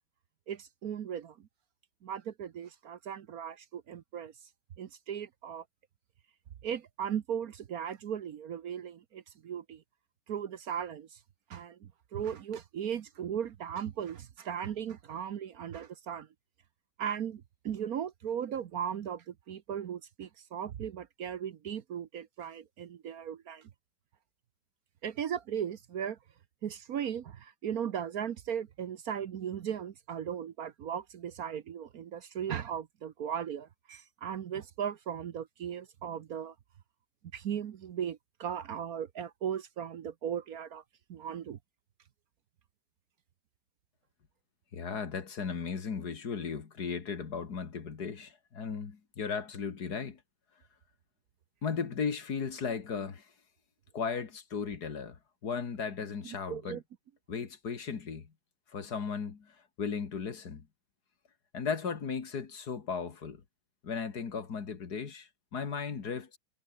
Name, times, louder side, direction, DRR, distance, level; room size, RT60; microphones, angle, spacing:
voice 1, 0.5-1.5 2.0-4.3 4.8-5.6 6.6-9.8 10.3-11.2 11.5-16.3 17.0-23.7 25.0-26.2 26.6-36.5 37.3-40.8 41.1-41.6 56.5-56.8, right 8 dB, 60° right, 1.3 m, -37 dB
voice 2, 44.7-50.2 51.6-53.2 53.9-55.2 55.4-56.8 57.3-58.3 58.7-59.5 59.8-60.6 61.5-63.4 63.8-66.4, left 6 dB, 60° left, 2.5 m, -36 dB
omnidirectional pair, 1.9 m